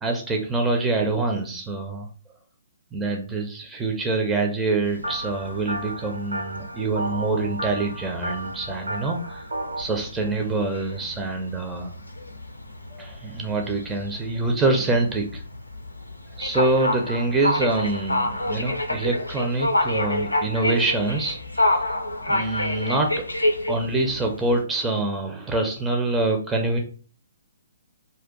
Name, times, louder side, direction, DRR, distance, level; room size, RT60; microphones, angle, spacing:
voice 1, 0.0-2.1 2.9-9.4 9.8-11.9 12.9-15.4 16.4-21.8 22.3-23.1 23.7-26.8, right 2 dB, 10° right, 2 dB, 0.4 m, -25 dB
sound 1, 4.8-24.6, left 1 dB, 85° left, 0.4 m, -29 dB
sound 2, 5.0-9.8, right 1 dB, 75° right, 0.7 m, -33 dB
2.6 x 2.2 x 3.7 m, 0.40 s
figure-of-eight pair, 130°, 0 cm